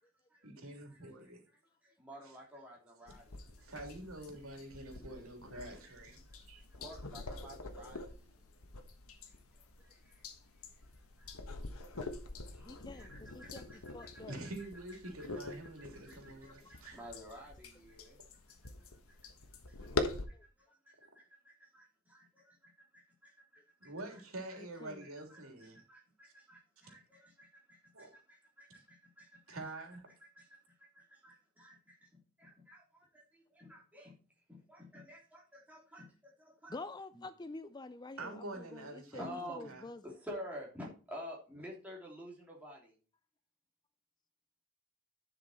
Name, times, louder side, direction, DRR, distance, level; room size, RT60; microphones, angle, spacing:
voice 1, 0.4-1.4 2.2-2.4 3.6-6.2 6.5-6.7 14.3-17.0 23.8-25.8 27.9-28.1 29.5-30.1 38.2-39.9, right 2 dB, 75° right, 3.2 m, -46 dB
voice 2, 1.8-3.6 6.3-6.4 6.7-8.3 9.8-10.2 11.2-11.3 11.9-12.0 12.5-14.2 15.2-18.2 21.1-24.2 24.5-24.6 25.3-29.6 30.3-32.0 32.4-34.2 34.5-36.7 37.1-37.2 39.1-39.7 40.0-42.9, equal, 5° right, 3.1 m, -51 dB
sound 1, 3.1-20.3, left 3 dB, 80° left, 1.4 m, -45 dB
voice 3, 12.6-14.4 16.6-16.8 20.3-20.4 24.6-25.1 28.1-28.2 36.7-40.0, left 2 dB, 20° left, 0.4 m, -48 dB
11.0 x 6.2 x 4.3 m
head